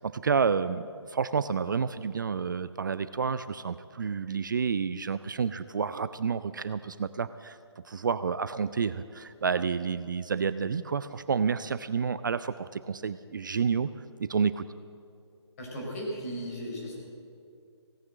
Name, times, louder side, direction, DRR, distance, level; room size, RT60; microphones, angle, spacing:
voice 1, 0.0-7.6 7.8-13.9 14.2-14.6, right 6 dB, 45° right, 14 dB, 0.4 m, -29 dB
voice 2, 15.6-17.0, equal, 30° left, -2 dB, 4.4 m, -36 dB
17.0 x 9.5 x 7.7 m, 2.4 s
figure-of-eight pair, 140°, 15 cm